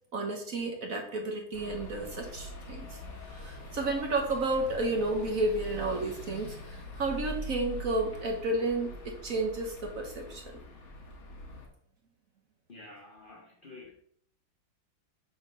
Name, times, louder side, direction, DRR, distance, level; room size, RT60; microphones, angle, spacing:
voice 1, 0.1-3.0 3.3-10.4, right 2 dB, 50° right, 1.2 m, -32 dB
sound 1, 1.5-11.7, equal, 90° left, 2.2 m, -43 dB
voice 2, 12.7-13.9, left 2 dB, 65° left, 0.5 m, -49 dB
7.3 x 3.8 x 5.2 m
omnidirectional pair, 2.2 m